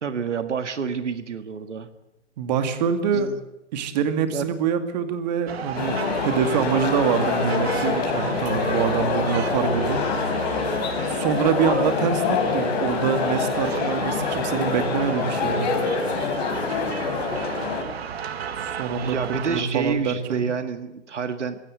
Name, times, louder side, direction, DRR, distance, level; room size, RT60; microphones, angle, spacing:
voice 1, 0.0-1.9 3.1-3.4 4.3-4.5 19.0-21.6, right 6 dB, 75° right, 9 dB, 1.9 m, -28 dB
voice 2, 2.4-3.3 3.7-10.0 10.5-10.8 11.1-15.8 18.8-20.5, right 7 dB, 35° right, 8 dB, 2.4 m, -25 dB
sound 1, 5.5-19.6, right 7 dB, 60° right, 2.0 m, -34 dB
sound 2, 5.7-17.8, left 5 dB, 35° left, 4.3 m, -26 dB
24.0 x 17.0 x 7.7 m, 0.91 s
hypercardioid pair, 145°, 36 cm